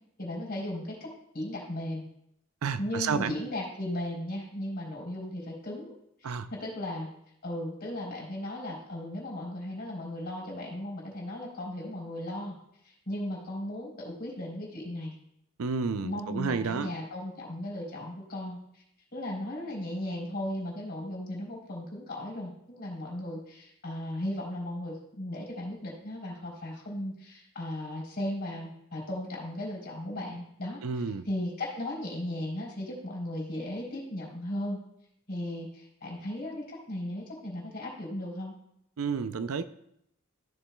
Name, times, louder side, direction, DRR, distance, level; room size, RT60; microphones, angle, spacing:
voice 1, 0.2-2.1 2.8-5.9 6.2-7.1 7.4-12.6 12.8-15.1 16.0-18.8 19.1-30.8 31.2-34.8 35.3-38.5, left 1 dB, 45° left, -3 dB, 3.7 m, -36 dB
voice 2, 2.6-3.3 6.2-6.5 15.6-16.9 30.8-31.2 39.0-39.6, right 5 dB, 75° right, 12 dB, 0.5 m, -30 dB
14.5 x 7.1 x 2.3 m, 0.75 s
head